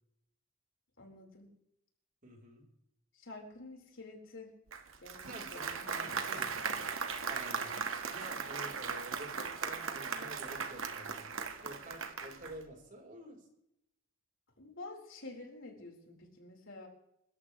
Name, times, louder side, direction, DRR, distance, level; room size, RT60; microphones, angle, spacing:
voice 1, 1.0-1.5 3.1-4.5 5.0-6.9 14.6-16.9, left 2 dB, 70° left, 1 dB, 4.5 m, -50 dB
voice 2, 2.2-2.6 5.2-6.8 7.3-7.7 8.1-11.3 11.6-13.4, right 1 dB, 40° right, 2 dB, 4.1 m, -49 dB
Applause, 4.7-12.6, right 5 dB, 80° right, 1.7 m, -38 dB
25.5 x 14.0 x 3.3 m, 0.80 s
head